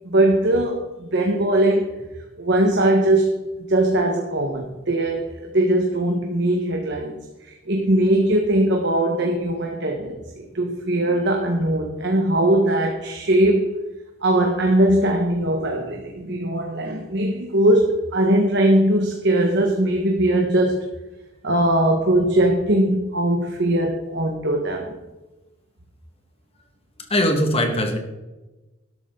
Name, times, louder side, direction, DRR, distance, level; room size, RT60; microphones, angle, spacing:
voice 1, 0.0-1.9 2.4-3.4 3.7-7.2 7.4-13.7 14.2-20.8 21.4-25.0, right 1 dB, 60° right, 2 dB, 1.5 m, -20 dB
voice 2, 27.1-28.0, left 1 dB, 30° left, 4 dB, 1.9 m, -20 dB
12.5 x 12.0 x 3.9 m, 1.1 s
head